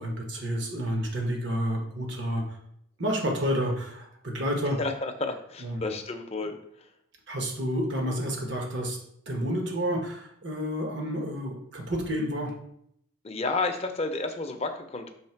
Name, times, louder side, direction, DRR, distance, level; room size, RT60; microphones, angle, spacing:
voice 1, 0.0-2.4 3.0-4.8 5.6-5.8 7.3-9.0 9.3-12.5, equal, 60° right, 1 dB, 1.1 m, -30 dB
voice 2, 4.8-6.6 13.2-15.1, left 3 dB, 30° left, 5 dB, 0.6 m, -31 dB
6.5 x 3.2 x 4.5 m, 0.72 s
head